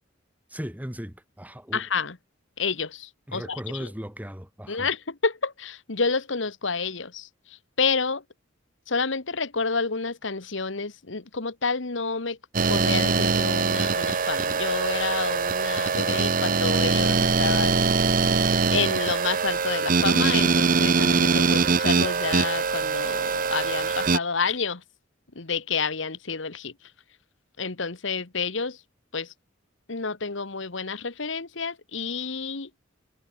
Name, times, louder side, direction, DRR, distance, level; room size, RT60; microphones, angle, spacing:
voice 1, 0.5-1.8 3.3-4.9, equal, 10° right, 2.9 m, -37 dB
voice 2, 1.7-2.2 2.6-3.9 4.7-7.3 7.8-8.2 8.9-12.4 12.7-17.9 18.7-24.8 25.3-26.7 27.6-28.8 29.1-29.3 29.9-32.7, left 4 dB, 70° left, 1.5 m, -29 dB
sound 1, 12.5-24.2, right 4 dB, 45° right, 0.9 m, -23 dB
head